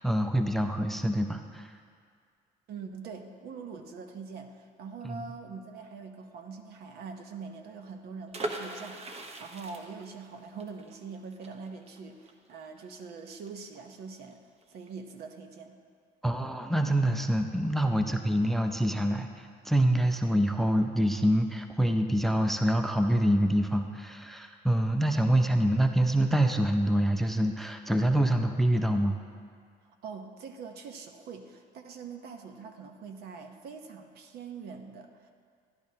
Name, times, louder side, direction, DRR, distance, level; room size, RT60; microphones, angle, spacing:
voice 1, 0.0-1.7 5.0-5.2 16.2-29.2, right 1 dB, ahead, 5 dB, 0.5 m, -26 dB
voice 2, 2.7-14.4 14.7-15.8 29.9-35.3, right 5 dB, 70° right, 6 dB, 0.9 m, -43 dB
sound 1, 8.3-13.9 14.2-14.3 14.6-14.9, right 2 dB, 40° right, 1.0 m, -40 dB
14.0 x 10.5 x 2.8 m, 2.1 s
cardioid pair, 110°, 17 cm